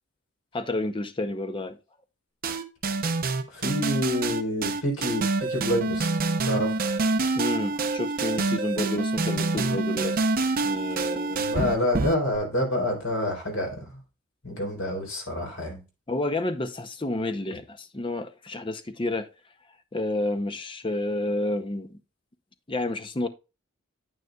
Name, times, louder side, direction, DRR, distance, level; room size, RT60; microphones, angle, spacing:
voice 1, 0.5-1.8 7.3-10.2 10.6-11.4 14.6-14.7 16.1-19.3 19.9-22.0 22.7-23.3, left 2 dB, 25° left, 0.6 m, -30 dB
sound 1, 2.4-12.4, right 3 dB, 40° right, 0.7 m, -26 dB
voice 2, 3.5-6.1 6.4-6.7 11.4-14.0 14.4-15.8, left 1 dB, 70° left, 3.9 m, -28 dB
9.3 x 9.1 x 2.3 m
head